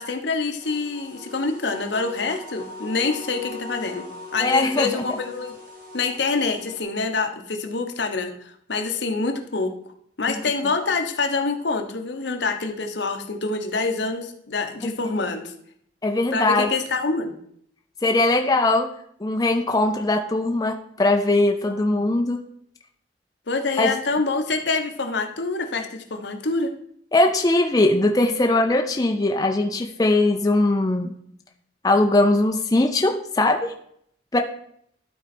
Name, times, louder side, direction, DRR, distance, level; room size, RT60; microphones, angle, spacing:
voice 1, 0.0-4.1 4.3-5.5 5.9-9.7 10.2-15.5 16.3-17.4 23.5-26.7, left 3 dB, 65° left, 5 dB, 0.9 m, -26 dB
sound 1, 0.6-6.8, left 2 dB, 45° right, 1.7 m, -40 dB
voice 2, 4.4-4.9 10.3-10.4 14.8-15.1 16.0-16.7 18.0-18.9 19.2-22.4 23.8-23.9 27.1-31.1 31.8-33.7 34.3-34.4, left 2 dB, 20° left, 3 dB, 0.5 m, -20 dB
12.0 x 4.2 x 4.3 m, 0.68 s
head